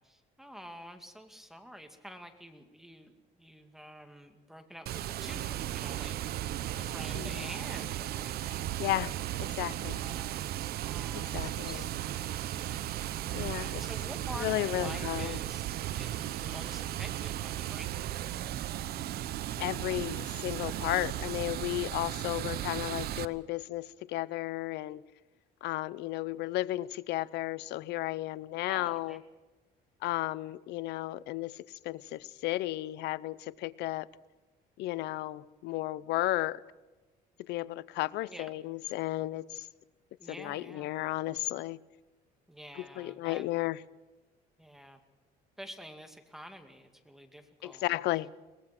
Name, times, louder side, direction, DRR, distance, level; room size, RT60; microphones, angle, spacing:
voice 1, 0.0-6.1 6.8-8.7 9.7-10.4 10.8-12.4 13.2-15.6 16.0-18.1 28.7-29.2 38.3-38.5 40.2-40.9 42.5-43.4 44.6-45.0 45.6-47.8, equal, ahead, 2.3 m, -48 dB
Water, 4.9-23.2, right 13 dB, 70° right, 0.9 m, -36 dB
voice 2, 7.1-7.5 8.8-10.1 11.3-11.8 13.3-13.8 14.4-15.4 19.6-25.0 25.6-29.2 30.0-34.1 34.8-36.6 37.5-39.7 40.3-41.8 42.8-43.8 47.6-48.3, left 17 dB, 80° left, 0.7 m, -34 dB
23.0 x 19.5 x 6.0 m
cardioid pair, 110°, 17 cm